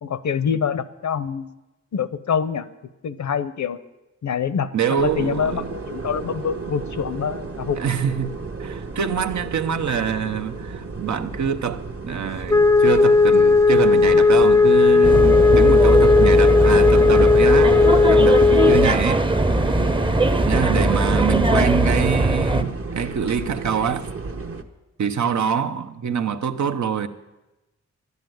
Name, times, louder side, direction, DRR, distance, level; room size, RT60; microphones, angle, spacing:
voice 1, 0.0-1.5 1.9-2.7 3.0-3.8 4.2-7.8 20.7-20.8, left 7 dB, 70° left, 0.8 m, -25 dB
voice 2, 4.7-5.6 7.8-17.8 18.1-19.3 20.4-24.1 25.0-27.1, right 7 dB, 75° right, 0.9 m, -25 dB
sound 1, 4.9-24.6, right 4 dB, 50° right, 1.1 m, -33 dB
Wind instrument woodwind instrument, 12.5-18.9, left 4 dB, 10° left, 0.4 m, -15 dB
sound 2, 15.0-22.6, right 1 dB, 15° right, 0.7 m, -20 dB
12.0 x 9.6 x 9.2 m
wide cardioid pair, 90°, 29 cm